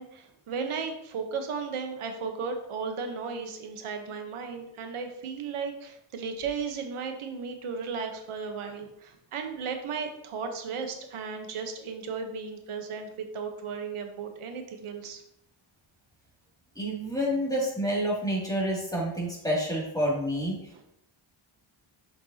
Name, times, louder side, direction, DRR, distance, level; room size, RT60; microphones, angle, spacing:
voice 1, 0.0-15.2 20.7-20.8, right 5 dB, 80° right, 5 dB, 1.1 m, -35 dB
voice 2, 16.8-20.5, equal, 5° left, -5 dB, 2.4 m, -28 dB
6.6 x 5.3 x 2.8 m, 0.78 s
cardioid pair, 80°, 50 cm